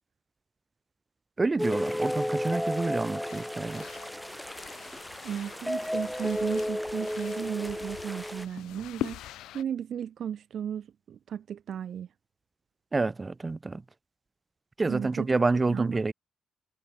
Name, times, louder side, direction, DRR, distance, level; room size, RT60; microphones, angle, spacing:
voice 1, 1.4-4.0 12.9-13.8 14.8-16.1, right 3 dB, 25° right, 4.0 m, -28 dB
sound 1, 1.6-8.5, equal, 5° left, 2.8 m, -33 dB
sound 2, 3.3-9.6, left 14 dB, 90° left, 3.2 m, -43 dB
voice 2, 5.2-9.2 9.5-12.1 14.8-15.3 15.7-16.0, right 9 dB, 65° right, 1.3 m, -35 dB
cardioid pair, 85°, 0 cm